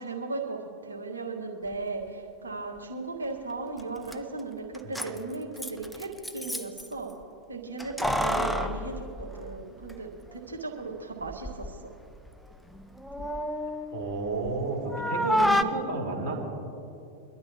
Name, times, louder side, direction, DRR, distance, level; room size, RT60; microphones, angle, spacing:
voice 1, 0.0-7.1 7.5-8.9 9.2-11.9 13.2-13.3, right 3 dB, 75° right, 0 dB, 1.7 m, -36 dB
Keys jangling, 3.8-3.9 4.1-4.2 4.7-6.9 7.8-9.9 10.3-10.4 11.2-11.8 12.1-14.6 14.9-15.6, equal, ahead, 0.5 m, -30 dB
voice 2, 13.9-16.4, right 3 dB, 45° right, -1 dB, 2.8 m, -31 dB
23.5 x 12.5 x 3.0 m, 2.6 s
figure-of-eight pair, 90°, 0 cm